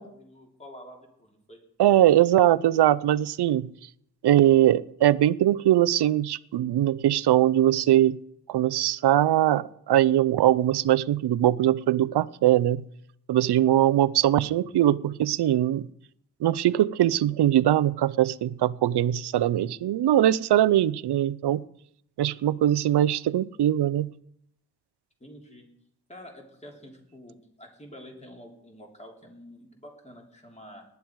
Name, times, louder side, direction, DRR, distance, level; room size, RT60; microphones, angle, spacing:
voice 1, 0.0-1.6 25.2-25.6 26.1-30.8, equal, 15° left, 1 dB, 3.3 m, -48 dB
voice 2, 1.8-3.7 4.2-8.2 8.5-12.8 13.3-15.9 16.4-21.6 22.2-24.1, right 12 dB, 80° right, 19 dB, 0.6 m, -21 dB
19.0 x 11.0 x 4.7 m, 0.72 s
wide cardioid pair, 120°, 39 cm